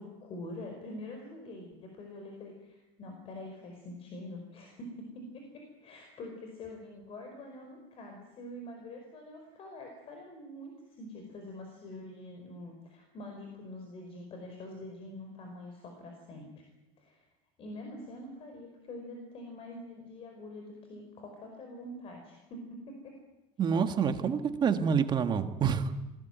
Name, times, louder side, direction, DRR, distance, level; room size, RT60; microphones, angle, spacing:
voice 1, 0.0-16.6 17.0-17.3 17.6-23.2, left 1 dB, 35° left, 3 dB, 5.0 m, -45 dB
voice 2, 23.6-25.9, right 6 dB, 25° right, 8 dB, 1.7 m, -27 dB
26.5 x 20.0 x 9.2 m, 0.99 s
cardioid pair, 165°, 18 cm